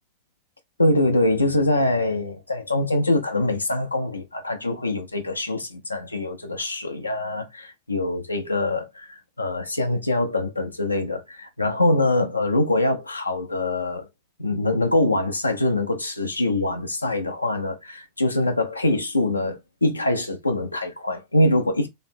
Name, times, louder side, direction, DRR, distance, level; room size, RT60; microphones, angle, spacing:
voice 1, 0.8-14.1 14.4-21.9, left 2 dB, 80° left, 0.8 m, -24 dB
3.4 x 3.2 x 4.3 m
figure-of-eight pair, 90°, 0 cm